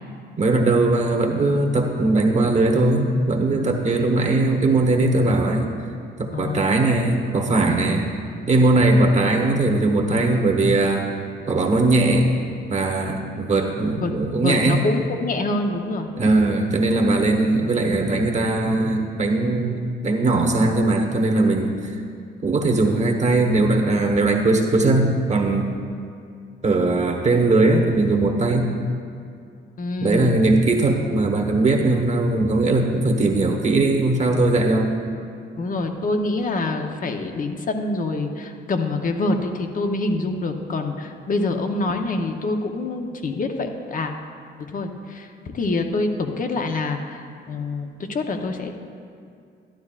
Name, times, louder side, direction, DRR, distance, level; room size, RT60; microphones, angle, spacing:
voice 1, 0.4-5.7 6.2-8.1 8.5-11.1 11.5-12.3 12.7-14.8 16.2-21.8 22.4-25.7 26.6-28.7 30.0-34.9, right 2 dB, 35° right, 2 dB, 1.2 m, -19 dB
voice 2, 6.3-6.6 14.0-16.1 29.8-30.4 35.6-44.1 44.7-45.3 45.5-48.7, left 2 dB, 45° left, 5 dB, 0.8 m, -26 dB
12.0 x 12.0 x 2.4 m, 2.4 s
cardioid pair, 90°, 20 cm